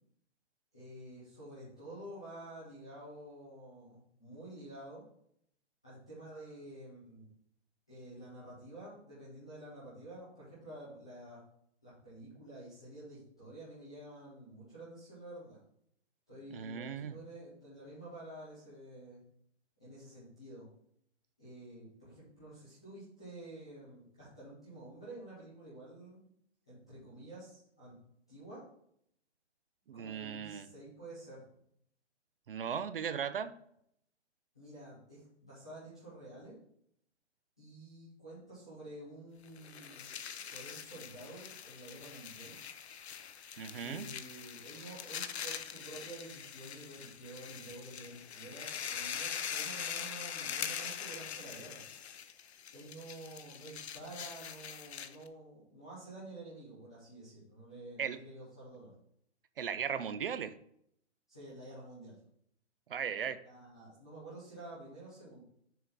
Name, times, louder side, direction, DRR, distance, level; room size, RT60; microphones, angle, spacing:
voice 1, 0.7-5.0 5.8-7.3 7.9-11.4 11.8-15.6 16.3-19.2 19.8-20.7 21.4-26.2 26.7-27.9 28.3-28.6 29.9-31.4 34.5-36.6 37.6-40.1 40.4-42.5 43.8-51.8 52.7-58.9 61.3-62.2 63.4-65.4, right 1 dB, 5° left, -13 dB, 0.4 m, -50 dB
voice 2, 16.5-17.1 29.9-30.6 32.5-33.5 43.6-44.1 58.0-58.2 59.6-60.5 62.9-63.4, right 7 dB, 50° right, 13 dB, 0.5 m, -37 dB
sound 1, 39.5-55.3, left 8 dB, 65° left, 0.7 m, -43 dB
6.7 x 3.8 x 5.8 m, 0.70 s
hypercardioid pair, 170°, 35 cm